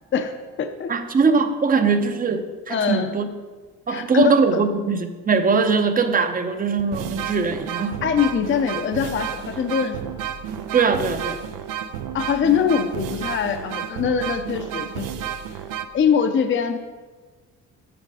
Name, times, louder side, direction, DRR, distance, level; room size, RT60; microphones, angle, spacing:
voice 1, 0.1-0.9 2.7-3.1 3.9-4.4 8.0-10.2 12.1-15.1 15.9-16.8, left 7 dB, 40° left, 7 dB, 0.6 m, -23 dB
voice 2, 0.9-3.3 3.9-8.0 10.7-11.4, right 4 dB, 25° right, 8 dB, 0.7 m, -21 dB
sound 1, 6.1-6.2 6.8-15.8, right 9 dB, 85° right, 0.6 m, -31 dB
7.8 x 6.5 x 4.8 m, 1.4 s
cardioid pair, 100°, 31 cm